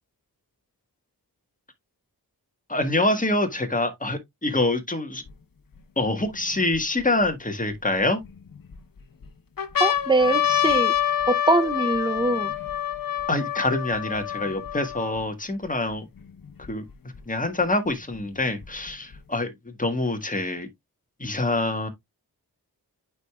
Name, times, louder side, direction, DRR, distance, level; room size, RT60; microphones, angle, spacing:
voice 1, 2.7-5.2 6.0-8.2 13.3-16.0 16.7-16.8 17.3-20.7 21.2-21.9, left 2 dB, 20° left, 1.5 m, -25 dB
sound 1, 5.3-5.4 6.0-7.3 8.0-8.8 9.2-9.3 9.6-15.2 15.9-16.0 16.2-17.2 18.1-19.2, left 10 dB, 60° left, 1.0 m, -27 dB
voice 2, 9.8-10.9 11.3-12.5, right 2 dB, 10° right, 0.7 m, -22 dB
8.9 x 4.9 x 2.4 m
wide cardioid pair, 65°, 39 cm